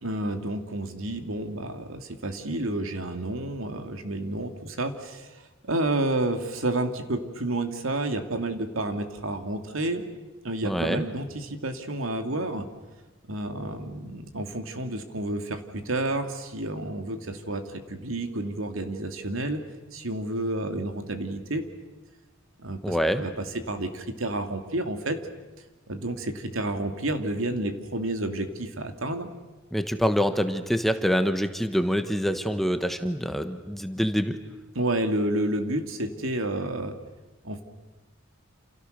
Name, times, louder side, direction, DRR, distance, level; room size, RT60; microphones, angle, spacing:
voice 1, 0.0-5.4 5.7-10.1 10.4-12.7 13.3-19.6 19.9-21.6 22.6-25.2 25.9-29.3 34.7-36.9 37.4-37.6, right 1 dB, 80° right, 7 dB, 2.5 m, -30 dB
voice 2, 10.6-11.0 22.8-23.2 29.7-34.4, equal, ahead, 8 dB, 1.3 m, -25 dB
28.5 x 28.0 x 6.7 m, 1.2 s
head